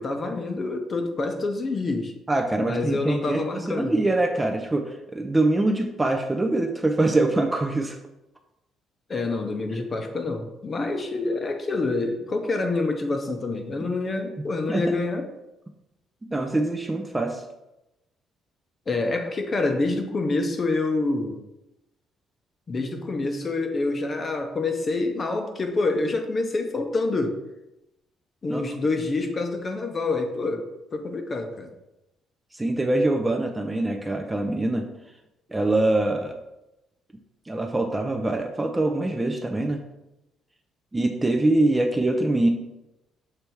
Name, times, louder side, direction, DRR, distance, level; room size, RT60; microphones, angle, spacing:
voice 1, 0.0-2.1 2.6-4.0 9.1-15.3 18.9-21.4 22.7-27.4 28.4-30.7 30.9-31.7, left 3 dB, 30° left, 5 dB, 0.7 m, -27 dB
voice 2, 2.3-8.0 14.7-15.0 16.3-17.4 28.5-28.6 32.5-34.9 35.5-36.3 37.5-39.8 40.9-42.5, right 2 dB, 10° right, 3 dB, 0.5 m, -24 dB
6.8 x 3.4 x 4.5 m, 0.93 s
cardioid pair, 150°, 0 cm